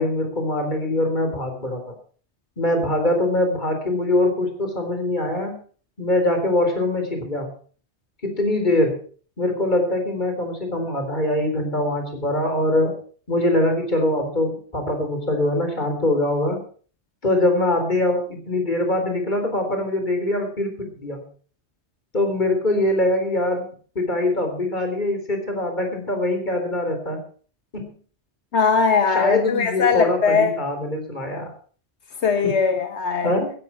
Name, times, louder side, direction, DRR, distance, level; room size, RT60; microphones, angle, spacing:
voice 1, 0.0-1.9 2.6-5.6 6.0-7.5 8.2-9.0 9.4-12.9 13.3-16.6 17.2-21.2 22.1-27.2 27.7-27.9 29.1-31.5 32.4-32.5 33.2-33.5, left 1 dB, 45° left, 4 dB, 4.0 m, -23 dB
voice 2, 28.5-30.5 32.2-33.3, left 5 dB, 90° left, 6 dB, 1.6 m, -20 dB
15.5 x 10.5 x 5.9 m, 0.43 s
omnidirectional pair, 1.1 m